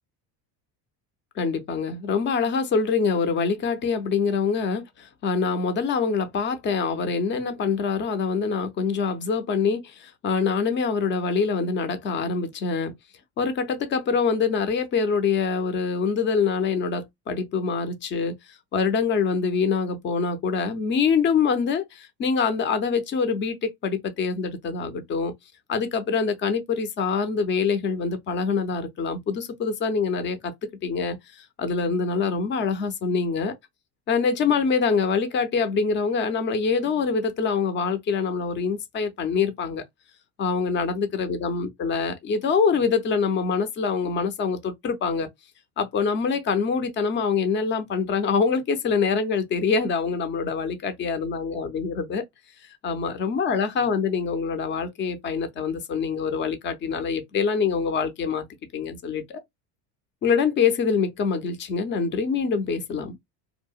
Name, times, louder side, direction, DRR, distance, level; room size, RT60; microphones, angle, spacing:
voice 1, 1.4-13.0 13.4-25.3 25.7-30.5 30.8-33.5 34.1-39.8 40.4-45.3 45.8-52.2 52.8-58.5 58.7-59.4 60.2-63.2, left 5 dB, 30° left, 0.4 m, -25 dB
2.7 x 2.0 x 2.3 m
cardioid pair, 140°, 43 cm